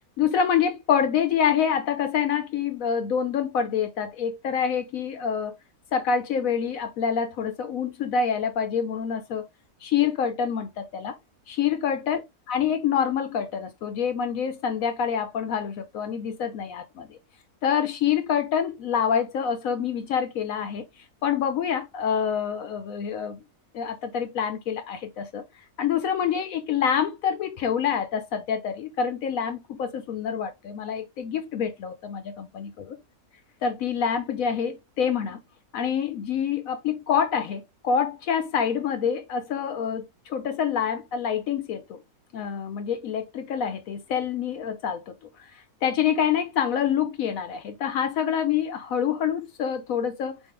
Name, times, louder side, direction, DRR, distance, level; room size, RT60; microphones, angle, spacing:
voice 1, 0.2-5.5 5.9-9.4 9.8-11.1 11.5-12.2 12.5-17.2 17.6-20.9 21.2-23.4 23.7-25.4 25.8-33.0 33.6-35.4 35.7-42.0 42.3-50.4, left 7 dB, 70° left, 0.9 m, -26 dB
4.4 x 3.6 x 3.2 m
omnidirectional pair, 1.6 m